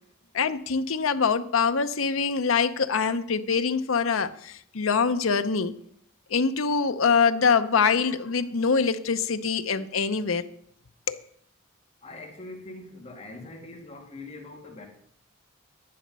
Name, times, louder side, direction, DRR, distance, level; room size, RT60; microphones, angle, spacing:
voice 1, 0.3-5.7 6.3-10.5 11.1-11.2, left 5 dB, 90° left, 0.7 m, -24 dB
voice 2, 12.0-14.9, left 2 dB, 30° left, 2.4 m, -42 dB
10.5 x 10.5 x 5.4 m
head